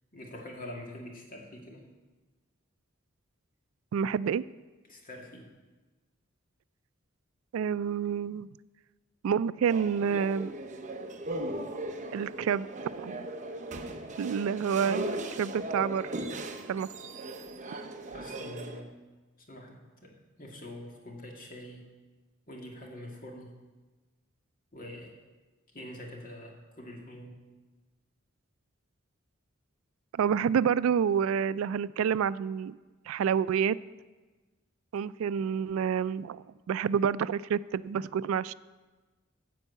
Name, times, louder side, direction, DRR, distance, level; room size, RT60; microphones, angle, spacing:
voice 1, 0.1-1.8 4.9-5.5 13.8-14.2 18.1-18.9 19.4-21.8 22.5-23.5 24.7-25.1 25.7-27.4, left 1 dB, 45° left, 0 dB, 2.0 m, -45 dB
voice 2, 3.9-4.4 7.5-8.5 9.2-10.5 12.1-12.7 13.0-13.3 14.2-16.1 16.7-16.9 30.1-32.8 33.1-33.8 34.9-38.5, right 7 dB, 85° right, 18 dB, 0.3 m, -28 dB
sound 1, 9.7-18.8, right 1 dB, 40° right, 0.8 m, -38 dB
13.5 x 4.6 x 8.2 m, 1.3 s
head